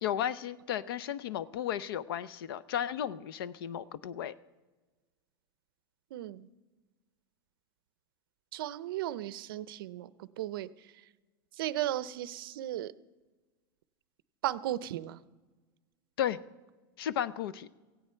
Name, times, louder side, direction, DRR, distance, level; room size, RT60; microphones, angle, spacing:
voice 1, 0.0-4.3 16.2-16.4 17.0-17.7, left 10 dB, 75° left, 18 dB, 0.6 m, -34 dB
voice 2, 6.1-6.5 8.5-10.7 11.6-12.9 14.4-15.2, right 13 dB, 70° right, 16 dB, 0.6 m, -35 dB
17.0 x 16.0 x 4.5 m, 1.3 s
supercardioid pair, 175°, 12 cm